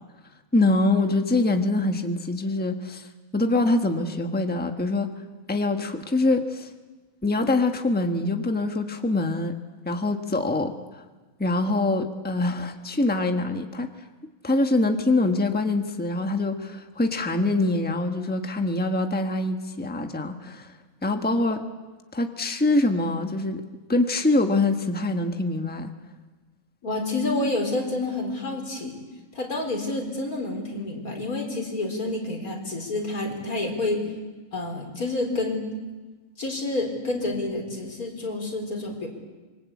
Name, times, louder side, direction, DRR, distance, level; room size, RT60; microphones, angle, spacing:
voice 1, 0.5-3.1 3.3-5.1 5.5-6.7 7.2-9.5 9.8-11.0 11.4-13.9 14.4-20.7 21.0-21.6 22.1-23.6 23.9-25.9, left 2 dB, 5° left, 5 dB, 1.3 m, -24 dB
voice 2, 26.8-29.0 29.3-34.0 34.5-35.6 36.4-39.1, left 2 dB, 90° left, 2 dB, 4.7 m, -28 dB
26.5 x 23.0 x 8.5 m, 1.3 s
omnidirectional pair, 1.5 m